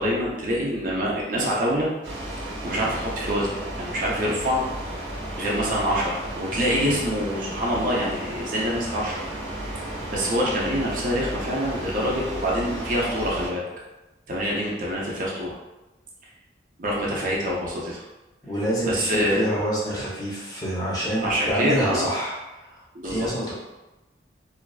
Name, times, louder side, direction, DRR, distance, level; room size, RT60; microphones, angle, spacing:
voice 1, 0.0-1.9 2.6-3.5 3.8-4.6 5.4-9.2 10.1-13.6 14.3-15.5 16.8-18.0 18.8-19.4 21.2-22.1 22.9-23.3, equal, 45° right, -4 dB, 0.5 m, -25 dB
sound 1, 2.0-13.5, right 1 dB, 85° right, 0.7 m, -34 dB
voice 2, 18.4-23.5, equal, 20° left, -7 dB, 0.6 m, -27 dB
2.5 x 2.2 x 2.3 m, 1.0 s
head